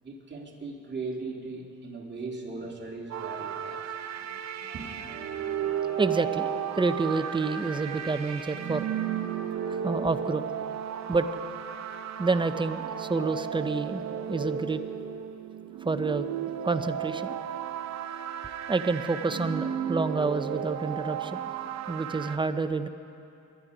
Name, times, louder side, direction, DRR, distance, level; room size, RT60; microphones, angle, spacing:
voice 1, 0.0-4.1 4.7-5.1, right 3 dB, 35° right, -1 dB, 2.7 m, -38 dB
sound 1, 3.1-22.4, right 9 dB, 65° right, 0.8 m, -34 dB
sound 2, 4.7-10.7, left 3 dB, 65° left, 3.8 m, -48 dB
voice 2, 6.0-6.5 6.8-8.9 9.8-10.4 11.1-11.3 12.2-14.8 15.8-16.3 16.6-17.4 18.7-21.4 21.9-22.9, right 3 dB, 15° right, 10 dB, 0.7 m, -28 dB
23.0 x 11.0 x 5.1 m, 2.8 s
cardioid pair, 90°, 30 cm